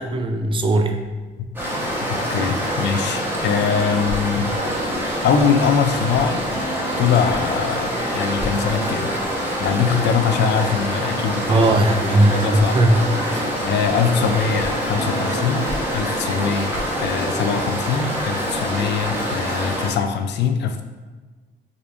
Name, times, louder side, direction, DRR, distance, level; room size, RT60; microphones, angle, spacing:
voice 1, 0.1-1.0 11.5-13.5, right 1 dB, 25° right, 5 dB, 0.4 m, -18 dB
sound 1, 1.5-19.9, equal, 10° right, 1.0 m, -26 dB
voice 2, 2.1-4.5 5.2-6.5 7.0-9.1 9.6-11.7 12.1-12.8 13.4-15.7 15.9-20.8, left 6 dB, 60° left, 7 dB, 0.4 m, -22 dB
sound 2, 3.4-19.3, equal, 40° left, 1.2 m, -33 dB
4.9 x 2.5 x 2.4 m, 1.4 s
cardioid pair, 90°, 20 cm